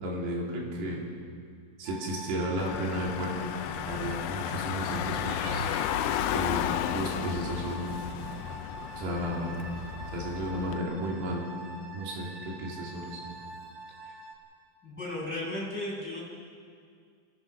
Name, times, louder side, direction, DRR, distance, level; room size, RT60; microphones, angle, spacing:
voice 1, 0.0-1.1 1.8-3.5 3.8-5.6 6.1-7.9 9.0-9.6 10.1-11.5 11.9-13.2, equal, 65° right, -3 dB, 5.2 m, -33 dB
sound 1, 1.8-14.3, right 3 dB, 40° right, 3.0 m, -45 dB
Car / Engine, 2.6-10.8, left 12 dB, 80° left, 2.4 m, -33 dB
sound 2, 5.3-7.5 8.2-8.7 9.0-9.2 13.5-13.6, right 5 dB, 85° right, 3.5 m, -44 dB
voice 2, 14.8-16.2, left 1 dB, ahead, -4 dB, 7.1 m, -35 dB
26.0 x 18.0 x 6.1 m, 2.2 s
omnidirectional pair, 5.3 m